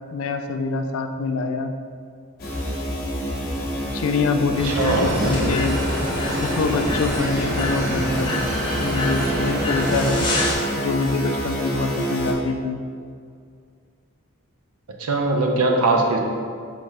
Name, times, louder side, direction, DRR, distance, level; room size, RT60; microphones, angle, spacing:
voice 1, 0.1-1.7 3.9-5.8 6.4-8.4 8.8-10.3 10.8-12.8, left 4 dB, 65° left, 7 dB, 0.3 m, -25 dB
sound 1, 2.4-12.3, right 1 dB, 40° left, 0.9 m, -28 dB
sound 2, 4.5-10.4, equal, 55° right, 1.0 m, -29 dB
voice 2, 4.6-5.6 15.0-16.2, right 2 dB, 80° right, 2 dB, 0.6 m, -21 dB
sound 3, 4.8-10.5, left 1 dB, 20° left, 0.6 m, -28 dB
4.4 x 3.8 x 3.2 m, 2.2 s
head